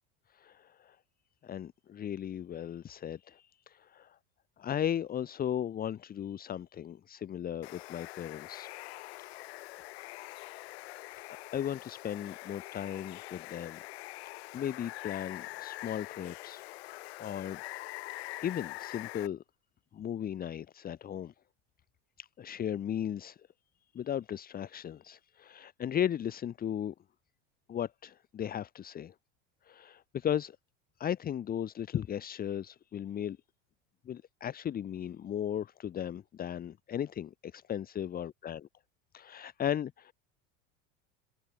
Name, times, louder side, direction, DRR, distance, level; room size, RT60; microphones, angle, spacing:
voice 1, 0.3-1.0 1.4-4.2 4.6-8.7 9.4-9.5 11.5-13.8 14.5-17.6 18.4-19.4 19.9-21.3 22.2-23.4 23.9-26.9 27.7-29.1 29.6-30.6 31.0-33.4 34.0-38.7 39.1-40.1, left 10 dB, 30° left, 1.8 m, -36 dB
Water, 7.6-19.3, left 21 dB, 85° left, 3.1 m, -44 dB
supercardioid pair, 135°, 31 cm